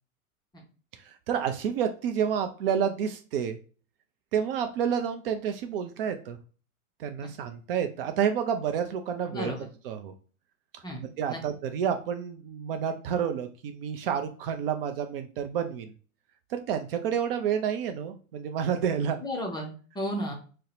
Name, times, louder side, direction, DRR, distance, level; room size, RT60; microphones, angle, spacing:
voice 1, 1.0-3.6 4.3-6.4 7.0-9.5 9.8-10.1 11.0-15.9 16.5-19.2, right 8 dB, 45° right, 6 dB, 0.4 m, -29 dB
voice 2, 9.3-9.7 10.8-11.4 19.2-20.3, equal, 10° left, 0 dB, 0.5 m, -34 dB
2.6 x 2.1 x 3.9 m, 0.39 s
hypercardioid pair, 100°, 43 cm